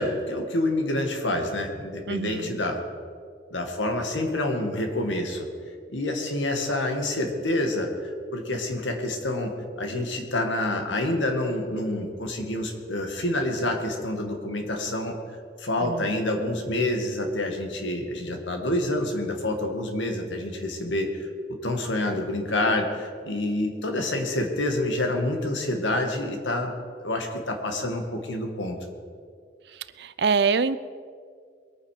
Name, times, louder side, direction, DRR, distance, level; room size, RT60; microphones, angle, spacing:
voice 1, 0.0-2.8 3.5-5.5 5.9-15.1 15.6-26.7 27.0-28.8, left 1 dB, 90° left, 3 dB, 2.1 m, -27 dB
voice 2, 2.1-2.6 15.8-16.1 29.7-30.8, right 5 dB, 65° right, 15 dB, 0.5 m, -25 dB
22.0 x 9.2 x 5.0 m, 2.2 s
head